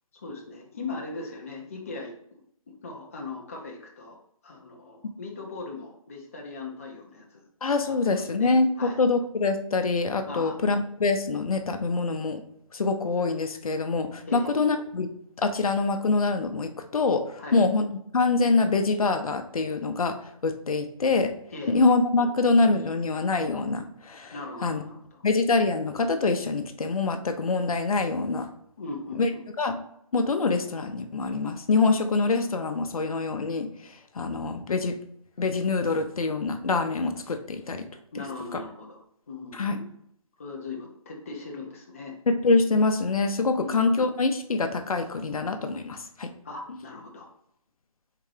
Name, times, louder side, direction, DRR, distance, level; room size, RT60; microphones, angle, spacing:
voice 1, 0.1-2.4 2.8-4.2 4.4-7.4 7.9-9.0 10.3-10.6 14.3-14.5 17.4-17.7 21.5-21.7 24.3-25.2 28.8-29.4 38.1-39.0 39.3-39.9 40.4-42.1 43.5-43.7 46.4-47.3, left 3 dB, 25° left, -1 dB, 0.5 m, -39 dB
voice 2, 7.6-12.4 12.7-15.1 15.4-20.2 20.4-21.3 21.7-24.3 24.6-24.8 25.2-28.5 29.2-29.3 29.6-29.8 30.1-33.7 34.2-35.0 35.4-37.9 38.5-38.6 39.5-39.8 42.3-46.3, left 3 dB, 80° left, 6 dB, 0.6 m, -25 dB
3.7 x 3.4 x 3.2 m, 0.70 s
hypercardioid pair, 170°, 18 cm